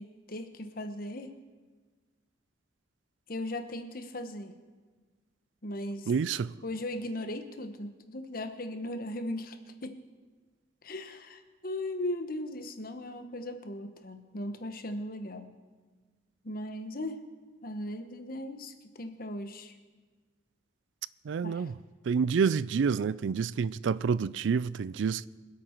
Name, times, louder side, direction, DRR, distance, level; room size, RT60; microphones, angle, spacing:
voice 1, 0.0-1.3 3.3-4.6 5.6-6.1 6.6-9.6 9.8-10.0 10.8-15.6 16.4-17.2 17.6-19.7 21.4-21.7, left 1 dB, 50° left, 1.1 m, -38 dB
voice 2, 6.1-6.5 21.3-21.7 22.1-25.3, right 6 dB, 80° right, 0.4 m, -28 dB
25.0 x 8.5 x 4.5 m
head